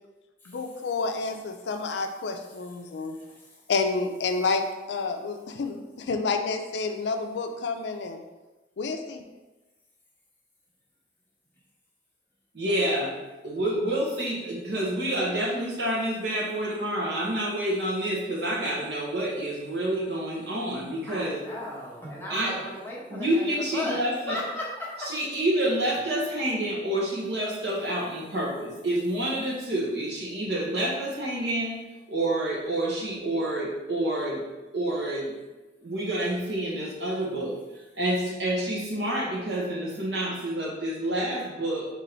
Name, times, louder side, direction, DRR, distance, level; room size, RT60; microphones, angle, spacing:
voice 1, 0.5-3.2 3.7-8.2 8.8-9.3, left 4 dB, 75° left, 5 dB, 0.4 m, -29 dB
voice 2, 3.2-3.6 21.1-25.1, left 1 dB, 10° left, -5 dB, 1.0 m, -36 dB
voice 3, 12.5-13.2 13.4-21.4 22.3-22.6 23.1-24.4 25.1-31.8 32.1-34.4 34.7-35.3 35.8-41.9, right 1 dB, 70° right, -4 dB, 1.2 m, -28 dB
4.0 x 3.0 x 4.3 m, 1.1 s
head